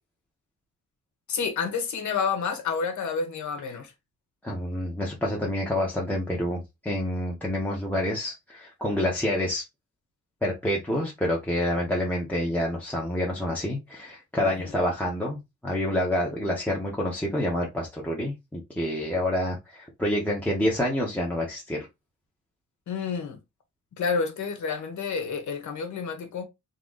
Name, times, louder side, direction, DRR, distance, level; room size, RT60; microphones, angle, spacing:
voice 1, 1.3-3.9 14.4-14.7 22.9-23.4 23.9-26.5, left 5 dB, 70° left, 1.2 m, -29 dB
voice 2, 4.4-9.6 10.4-21.8, left 1 dB, 5° left, 0.8 m, -28 dB
3.7 x 2.8 x 3.7 m
wide cardioid pair, 180°, 31 cm